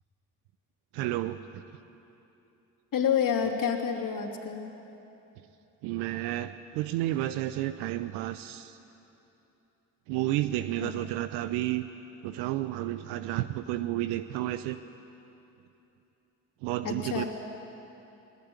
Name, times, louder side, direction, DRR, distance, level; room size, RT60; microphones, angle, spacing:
voice 1, 0.9-1.6 5.8-8.8 10.1-11.9 12.2-14.8 16.6-17.2, right 14 dB, 80° right, 12 dB, 0.7 m, -31 dB
voice 2, 2.9-4.7 10.8-10.9 16.8-17.3, left 7 dB, 55° left, 3 dB, 2.9 m, -28 dB
20.5 x 20.0 x 9.6 m, 2.9 s
hypercardioid pair, 45°, 39 cm